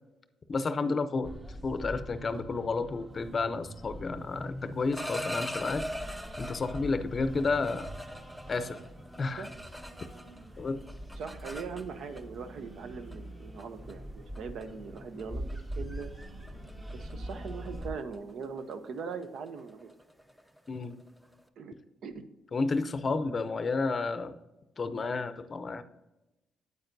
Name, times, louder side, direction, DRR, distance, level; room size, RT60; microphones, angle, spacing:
voice 1, 0.5-1.3 1.6-5.9 6.4-7.9 8.5-8.8 9.2-9.5 10.6-10.8 20.7-21.0 22.5-24.4 24.8-25.8, left 3 dB, 40° left, 11 dB, 0.6 m, -31 dB
sound 1, 1.2-17.9, equal, 25° right, 1.3 m, -43 dB
sound 2, 4.7-6.8 7.4-10.4 10.7-12.2 13.1-13.3 13.6-13.9 14.4-14.6 15.0-15.2 15.5-15.8 16.0-21.4, equal, 5° right, 0.6 m, -41 dB
voice 2, 11.1-16.1 16.9-19.9 21.6-21.7 22.0-22.2, right 5 dB, 70° right, 10 dB, 0.7 m, -41 dB
8.6 x 8.5 x 2.7 m, 1.0 s
cardioid pair, 90°, 0 cm